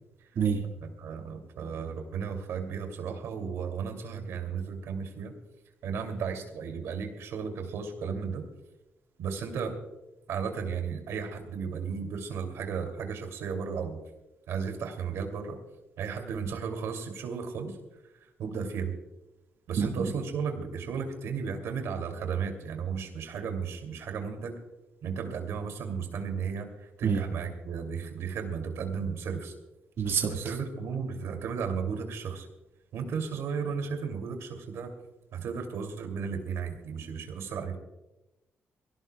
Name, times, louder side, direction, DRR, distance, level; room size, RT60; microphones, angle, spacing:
voice 1, 0.8-5.3 5.8-8.4 9.2-9.8 10.3-14.0 14.5-15.6 16.0-17.8 18.4-19.0 19.7-24.6 25.0-29.5 30.3-32.5 32.9-34.9 35.3-37.8, right 6 dB, 90° right, 4 dB, 2.6 m, -34 dB
voice 2, 19.8-20.1 27.0-27.2 30.0-30.3, right 6 dB, 65° right, 2 dB, 1.8 m, -26 dB
24.5 x 17.0 x 2.3 m, 0.99 s
cardioid pair, 110°, 5 cm